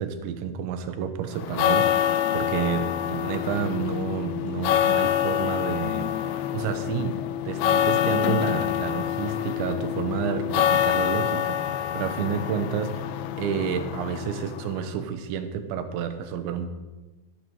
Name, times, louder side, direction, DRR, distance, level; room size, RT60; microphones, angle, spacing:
voice 1, 0.0-6.1 6.5-7.2 7.5-13.1 13.4-16.7, right 8 dB, 75° right, 9 dB, 2.9 m, -30 dB
sound 1, 1.3-14.9, left 11 dB, 90° left, 2.6 m, -26 dB
13.5 x 12.5 x 4.6 m, 1.2 s
omnidirectional pair, 5.8 m